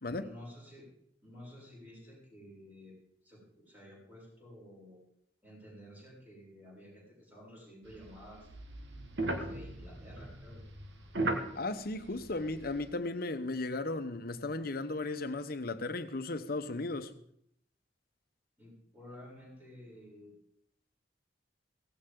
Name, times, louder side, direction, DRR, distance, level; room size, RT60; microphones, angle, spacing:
voice 1, 0.0-0.9 1.2-2.9 3.2-5.0 5.4-8.5 9.1-10.6 18.6-20.3, left 1 dB, 10° right, 7.4 m, -52 dB
sound 1, 7.9-12.9, right 2 dB, 80° right, 1.7 m, -38 dB
voice 2, 11.5-17.1, left 2 dB, 55° left, 1.0 m, -36 dB
17.0 x 16.0 x 3.8 m
head